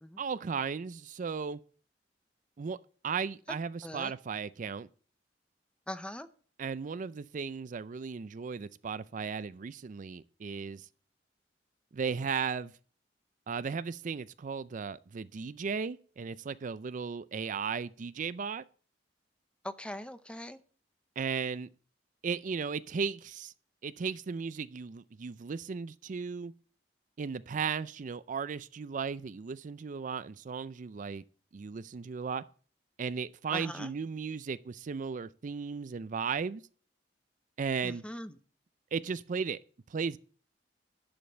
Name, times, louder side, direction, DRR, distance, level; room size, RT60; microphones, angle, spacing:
voice 1, 0.2-1.6 2.6-2.8 3.0-4.9 6.6-10.9 11.9-12.7 13.5-18.6 21.2-21.7 22.2-23.5 23.8-26.5 27.2-31.2 31.5-32.4 33.0-36.6 37.6-38.0 38.9-39.6 39.9-40.2, right 5 dB, 45° right, 0.4 m, -35 dB
voice 2, 5.9-6.3 19.6-20.6 33.5-33.9 37.8-38.4, left 1 dB, 5° left, 0.7 m, -41 dB
11.0 x 5.2 x 7.8 m
head